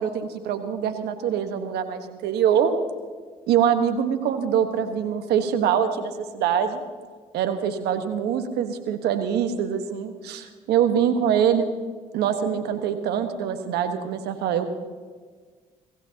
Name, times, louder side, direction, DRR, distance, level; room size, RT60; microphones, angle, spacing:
voice 1, 0.0-2.7 3.5-6.8 7.3-11.7 12.1-14.7, right 8 dB, 75° right, 7 dB, 1.4 m, -24 dB
25.5 x 15.5 x 2.9 m, 1.5 s
supercardioid pair, 60°, 17 cm